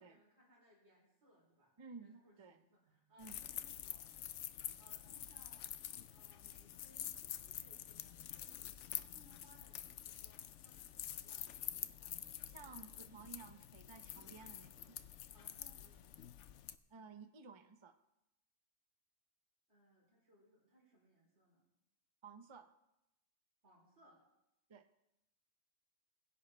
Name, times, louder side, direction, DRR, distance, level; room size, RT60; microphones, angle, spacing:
voice 1, 0.0-1.7 2.0-4.1 4.8-5.7 6.1-12.9 15.3-16.3 19.7-21.7 23.6-24.2, equal, 60° right, -4 dB, 4.1 m, -68 dB
voice 2, 1.8-2.6 3.2-3.4 12.5-15.0 16.9-17.9 22.2-22.7 24.7-24.9, right 5 dB, 30° right, 8 dB, 0.5 m, -55 dB
sound 1, 3.2-16.8, left 11 dB, 70° left, 0.9 m, -48 dB
21.0 x 10.5 x 3.3 m, 0.89 s
omnidirectional pair, 1.3 m